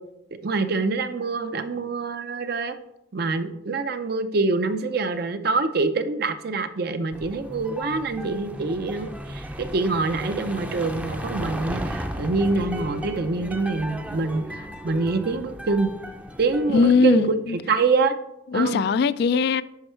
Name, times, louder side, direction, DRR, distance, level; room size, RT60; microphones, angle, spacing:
voice 1, 0.3-2.7 3.1-15.9 16.4-17.2 17.7-18.1 18.5-18.8, right 3 dB, 60° right, 0.6 m, -25 dB
sound 1, 7.1-17.0, equal, 10° right, 0.5 m, -35 dB
voice 2, 16.7-17.6 18.5-19.6, left 5 dB, 65° left, 0.3 m, -20 dB
10.5 x 4.5 x 4.4 m
head